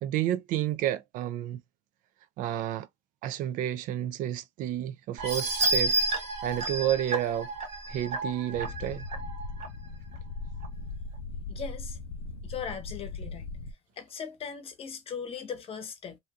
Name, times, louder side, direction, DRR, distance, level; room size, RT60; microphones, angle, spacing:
voice 1, 0.0-1.6 2.4-2.9 3.2-6.0 6.4-7.5 7.9-9.0, right 12 dB, 65° right, 0.4 m, -30 dB
sound 1, 5.2-9.7 10.1-10.2 10.6-10.7, right 2 dB, 45° right, 1.2 m, -30 dB
sound 2, 8.5-13.7, left 3 dB, 85° left, 0.4 m, -39 dB
voice 2, 11.5-12.0 12.4-13.5 14.0-16.2, left 7 dB, 40° left, 0.8 m, -38 dB
2.6 x 2.2 x 2.7 m
supercardioid pair, 95°, 15 cm